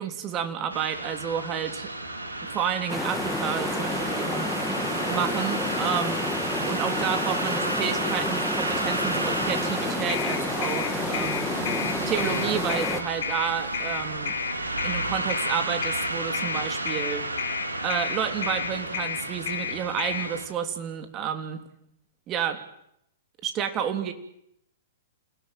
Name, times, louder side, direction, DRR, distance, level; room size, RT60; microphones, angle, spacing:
voice 1, 0.0-1.9 2.4-4.5 5.1-6.3 6.7-11.5 12.0-14.3 14.8-17.3 17.8-21.7 22.3-22.6 23.4-24.1, right 8 dB, 30° right, 7 dB, 3.5 m, -30 dB
sound 1, 0.7-20.5, right 2 dB, 85° right, 4.7 m, -32 dB
sound 2, 2.9-13.0, left 2 dB, 5° left, 2.4 m, -30 dB
sound 3, 10.1-20.3, left 9 dB, 60° left, 4.1 m, -31 dB
29.0 x 17.5 x 9.3 m, 0.75 s
figure-of-eight pair, 110°, 0 cm